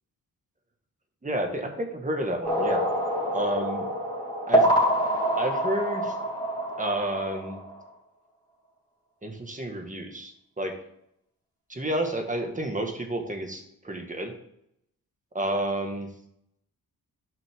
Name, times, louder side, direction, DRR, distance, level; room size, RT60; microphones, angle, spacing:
voice 1, 1.2-2.9 3.3-3.9 4.5-4.7 5.3-6.1 6.8-7.6 9.2-10.7 11.7-14.3 15.3-16.1, right 1 dB, 20° right, 4 dB, 1.6 m, -30 dB
sound 1, 2.4-7.8, right 1 dB, 15° left, 3.6 m, -26 dB
12.5 x 5.8 x 3.6 m, 0.76 s
wide cardioid pair, 115°, 35 cm